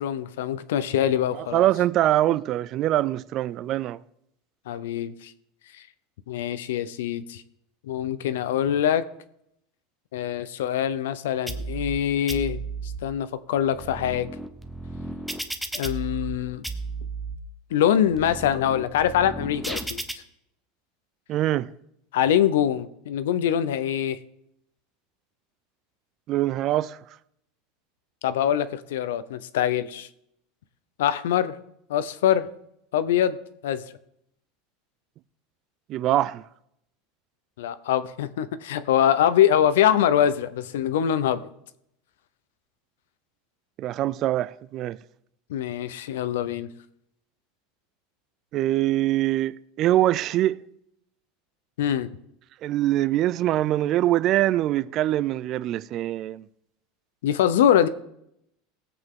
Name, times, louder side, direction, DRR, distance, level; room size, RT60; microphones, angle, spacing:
voice 1, 0.0-1.6 4.7-5.3 6.3-7.4 7.8-9.0 10.1-14.3 15.7-16.6 17.7-20.0 22.1-24.2 28.2-30.1 31.0-31.6 31.9-32.5 32.9-33.4 33.6-33.8 37.6-41.5 45.5-46.7 51.8-52.1 57.2-57.9, left 10 dB, 90° left, 0.7 m, -24 dB
voice 2, 1.5-4.0 21.3-21.7 26.3-27.0 35.9-36.4 43.8-45.0 48.5-50.6 52.6-56.4, right 14 dB, 45° right, 0.4 m, -23 dB
sound 1, 11.5-12.0 12.3-13.0 13.6-16.4 16.6-17.4 17.9-20.1, right 3 dB, ahead, 1.0 m, -34 dB
18.0 x 8.0 x 3.8 m
supercardioid pair, 130°, 0 cm